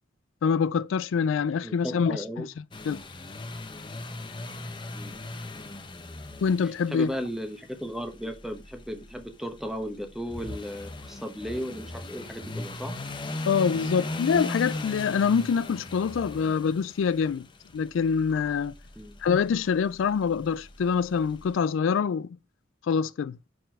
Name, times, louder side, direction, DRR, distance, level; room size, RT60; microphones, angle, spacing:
voice 1, 0.4-2.5 2.9-3.0 6.4-7.1 13.5-17.5 17.7-18.7 19.2-22.3 22.9-23.4, left 6 dB, 85° left, 0.3 m, -25 dB
voice 2, 1.6-2.5 4.9-5.5 6.6-13.0 18.9-19.2, equal, ahead, 1.1 m, -36 dB
sound 1, 2.7-21.6, left 2 dB, 25° left, 0.8 m, -39 dB
6.0 x 4.5 x 4.6 m
head